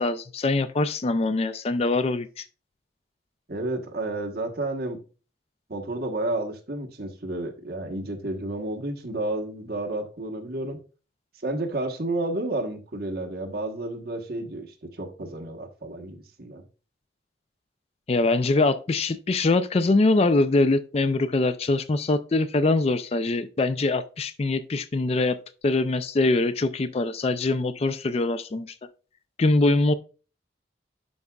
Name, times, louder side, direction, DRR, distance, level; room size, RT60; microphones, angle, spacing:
voice 1, 0.0-2.4 18.1-25.4 25.6-28.7 29.4-29.9, left 2 dB, 35° left, 0.4 m, -23 dB
voice 2, 3.5-5.0 5.7-10.8 11.4-16.6, right 2 dB, 60° right, 1.2 m, -31 dB
10.5 x 4.8 x 2.3 m
head